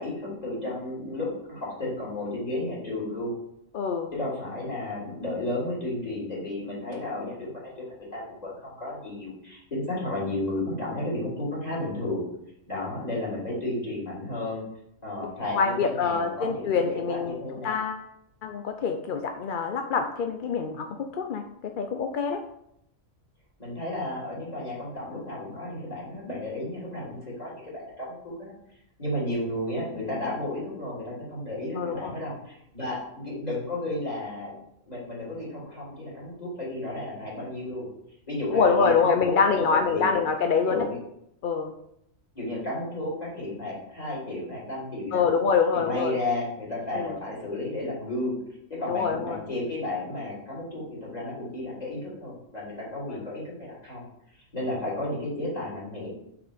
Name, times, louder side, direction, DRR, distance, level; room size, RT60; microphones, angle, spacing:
voice 1, 0.0-3.3 4.1-12.2 12.7-14.6 15.0-17.7 23.6-28.5 29.0-34.6 34.9-37.9 38.3-40.1 40.6-41.0 42.4-45.2 45.7-48.4 48.7-54.1 54.5-56.1, left 1 dB, 30° left, -6 dB, 3.5 m, -33 dB
voice 2, 3.7-4.1 12.7-12.8 15.5-17.4 17.6-18.0 18.4-20.9 21.2-21.4 21.8-22.4 31.8-32.1 38.5-40.8 41.4-41.7 45.1-46.1 46.9-47.2 48.9-49.4, left 5 dB, 55° left, 5 dB, 0.6 m, -25 dB
6.3 x 6.1 x 5.0 m, 0.77 s
omnidirectional pair, 1.4 m